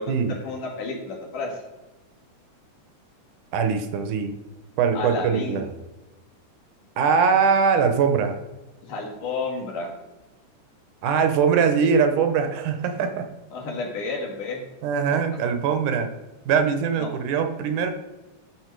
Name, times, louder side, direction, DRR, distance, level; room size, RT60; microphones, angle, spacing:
voice 1, 0.0-1.6 5.0-5.6 8.8-9.9 13.5-14.6 15.1-15.2 17.0-17.1, left 3 dB, 85° left, 0 dB, 3.5 m, -31 dB
voice 2, 3.5-4.4 4.8-5.7 7.0-8.4 11.0-13.3 14.8-16.1 16.5-17.9, right 6 dB, 80° right, 7 dB, 2.5 m, -22 dB
13.0 x 5.3 x 4.6 m, 1.1 s
omnidirectional pair, 3.6 m